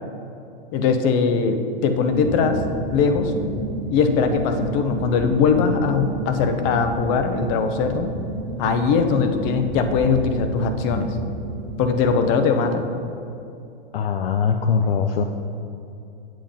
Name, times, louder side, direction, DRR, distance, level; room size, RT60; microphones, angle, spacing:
voice 1, 0.7-2.6 2.9-3.3 3.9-8.1 8.6-11.2 11.8-12.8, left 5 dB, 40° left, 7 dB, 0.9 m, -20 dB
sound 1, 2.0-12.0, right 2 dB, 75° right, 1.4 m, -31 dB
voice 2, 13.9-15.2, left 6 dB, 75° left, 6 dB, 0.6 m, -21 dB
7.7 x 7.0 x 5.3 m, 2.8 s
hypercardioid pair, 120°, 29 cm